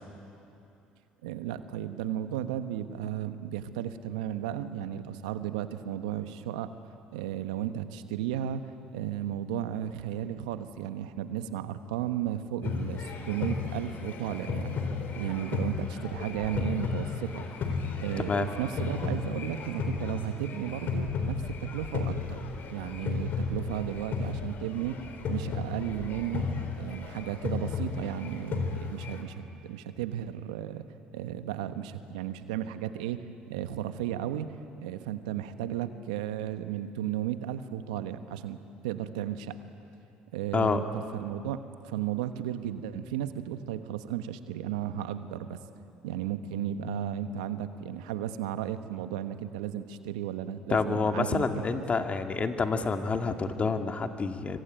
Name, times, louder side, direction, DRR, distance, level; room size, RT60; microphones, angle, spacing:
voice 1, 1.2-6.7 7.1-14.8 15.2-17.4 18.0-22.4 22.7-25.0 25.3-26.5 26.8-30.8 31.1-34.5 34.8-38.6 38.8-39.6 40.3-45.6 46.0-51.8, right 11 dB, 85° right, 10 dB, 1.2 m, -34 dB
sound 1, 12.6-29.2, left 5 dB, 55° left, 3.9 m, -34 dB
voice 2, 50.7-54.6, left 4 dB, 35° left, 6 dB, 2.3 m, -28 dB
26.0 x 25.0 x 9.1 m, 2.8 s
hypercardioid pair, 65°, 4 cm